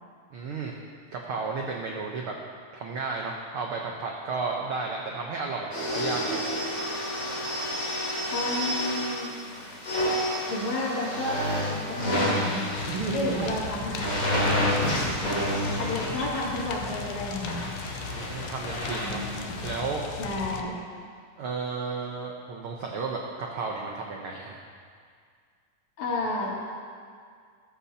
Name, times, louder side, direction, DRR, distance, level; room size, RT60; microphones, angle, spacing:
voice 1, 0.3-0.7 1.1-2.3 2.7-6.4 12.9-13.5 18.1-19.2 19.6-20.0 21.4-24.6, right 4 dB, 85° right, 0 dB, 1.2 m, -33 dB
sound 1, 5.7-19.7, equal, 25° left, 3.4 m, -30 dB
voice 2, 8.3-9.3 10.5-11.4 11.7-12.7 13.1-17.7 19.0-19.7 20.2-20.8 26.0-26.5, left 2 dB, 65° left, -6 dB, 3.8 m, -32 dB
sound 2, 12.8-20.6, left 6 dB, 85° left, 1.3 m, -38 dB
14.5 x 13.5 x 2.8 m, 2.1 s
omnidirectional pair, 3.6 m